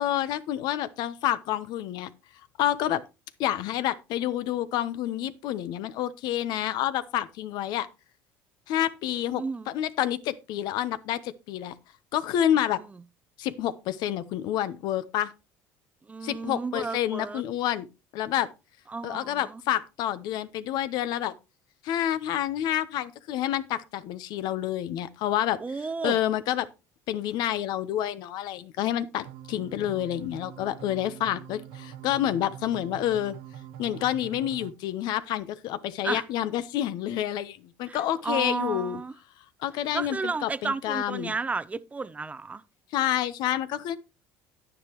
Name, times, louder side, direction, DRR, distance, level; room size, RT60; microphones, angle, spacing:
voice 1, 0.0-2.1 2.6-3.0 3.4-7.9 8.7-11.7 12.1-12.8 13.4-15.3 16.2-17.9 18.1-18.5 19.0-21.3 21.8-25.6 26.0-26.7 27.1-33.3 33.8-39.0 39.6-41.3 42.9-44.0, left 12 dB, 65° left, 0.9 m, -28 dB
voice 2, 9.3-9.7 12.8-12.9 16.0-17.4 18.9-19.6 25.6-26.2 36.0-36.2 37.8-39.1 39.9-42.6, right 4 dB, 20° right, 0.6 m, -32 dB
sound 1, 29.2-34.7, right 11 dB, 80° right, 0.9 m, -44 dB
9.9 x 9.9 x 3.0 m
supercardioid pair, 100°, 8 cm